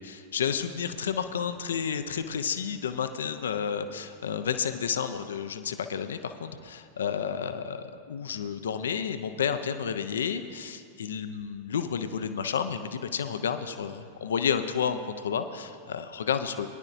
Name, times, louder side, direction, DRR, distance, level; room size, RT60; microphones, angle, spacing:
voice 1, 0.0-16.7, left 7 dB, 65° left, 9 dB, 0.6 m, -31 dB
21.0 x 10.5 x 2.6 m, 2.2 s
figure-of-eight pair, 90°, 0 cm